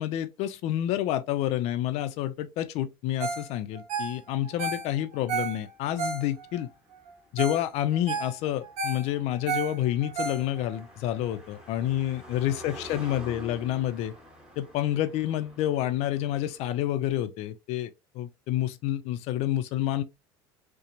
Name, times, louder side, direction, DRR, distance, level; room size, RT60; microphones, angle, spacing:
voice 1, 0.0-6.7 7.3-14.1 14.6-17.9 18.1-20.0, left 12 dB, 60° left, 0.4 m, -29 dB
Ringtone, 3.2-3.5 3.7-6.6 7.1-7.2 7.4-7.7 7.9-10.8 11.2-11.3, right 4 dB, 65° right, 0.8 m, -32 dB
Car passing by, 5.7-16.9, left 1 dB, 5° right, 1.1 m, -49 dB
2.8 x 2.1 x 2.5 m
supercardioid pair, 90°, 12 cm